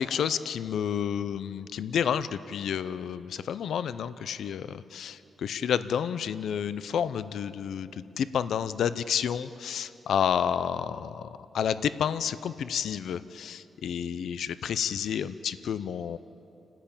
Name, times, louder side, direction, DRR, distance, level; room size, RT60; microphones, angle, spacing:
voice 1, 0.0-16.2, left 8 dB, 85° left, 14 dB, 0.5 m, -30 dB
29.5 x 10.0 x 8.8 m, 2.8 s
cardioid pair, 105°, 0 cm